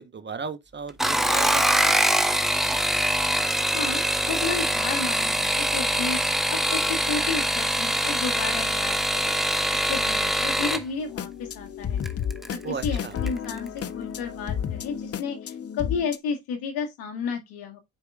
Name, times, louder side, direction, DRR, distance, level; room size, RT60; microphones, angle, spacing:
voice 1, 0.0-2.0 12.6-13.1, right 5 dB, 30° right, 1.0 m, -35 dB
sound 1, 0.9-10.8 12.0-12.5 13.0-13.4 13.7-13.8, right 1 dB, ahead, 0.9 m, -24 dB
voice 2, 3.7-9.4 9.9-12.0 12.5-17.8, left 5 dB, 80° left, 2.0 m, -32 dB
sound 2, 11.0-16.2, left 8 dB, 40° left, 0.7 m, -32 dB
11.5 x 4.7 x 2.4 m
supercardioid pair, 70°, 37 cm